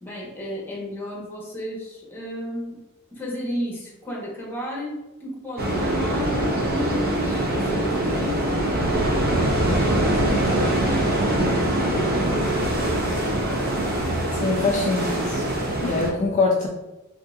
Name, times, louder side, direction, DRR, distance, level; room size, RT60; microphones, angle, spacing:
voice 1, 0.0-2.8 3.1-11.3 11.8-12.8, equal, 10° left, -4 dB, 1.0 m, -33 dB
sound 1, 5.6-16.1, right 1 dB, 45° right, 0.6 m, -23 dB
voice 2, 14.3-15.4 15.8-16.7, left 3 dB, 35° left, -1 dB, 0.3 m, -23 dB
3.7 x 2.7 x 2.4 m, 1.0 s
head